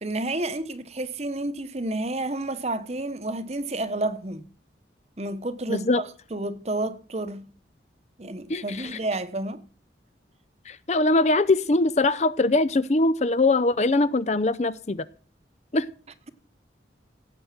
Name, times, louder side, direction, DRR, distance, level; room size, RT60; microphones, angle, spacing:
voice 1, 0.0-4.5 5.2-7.5 8.2-9.6, right 2 dB, 35° right, 1.0 m, -30 dB
voice 2, 5.7-6.0 8.5-9.0 10.7-15.0 15.7-15.9, left 2 dB, 35° left, 0.5 m, -22 dB
17.0 x 8.0 x 5.9 m
head